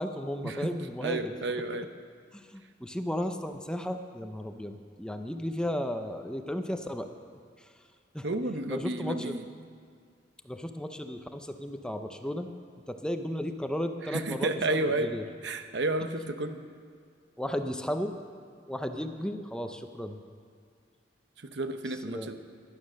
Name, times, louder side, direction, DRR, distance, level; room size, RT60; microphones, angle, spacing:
voice 1, 0.0-1.3 2.3-7.1 8.1-8.3 8.7-9.4 10.4-12.5 12.9-15.2 17.4-18.1 18.7-20.2 22.1-22.3, equal, 5° left, 7 dB, 0.6 m, -34 dB
voice 2, 1.0-1.9 8.2-9.7 14.0-15.1 15.4-16.6 21.4-22.3, right 2 dB, 70° right, 8 dB, 0.9 m, -31 dB
16.0 x 11.5 x 6.4 m, 2.2 s
head